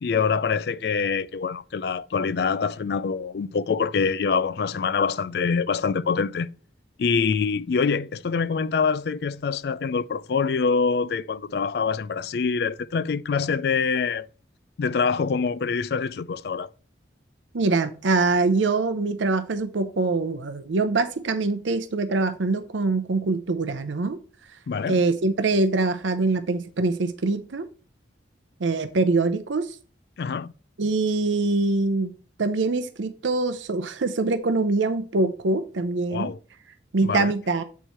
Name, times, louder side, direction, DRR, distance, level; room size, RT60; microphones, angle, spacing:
voice 1, 0.0-6.5 7.0-14.3 14.8-16.7 24.7-25.0 30.2-30.5 36.1-36.4 37.0-37.3, left 5 dB, 55° left, 0.3 m, -25 dB
voice 2, 17.5-24.2 24.9-27.7 28.6-29.8 30.8-32.1 32.4-36.3 36.9-37.6, right 3 dB, 85° right, 0.6 m, -24 dB
8.2 x 4.5 x 4.4 m
head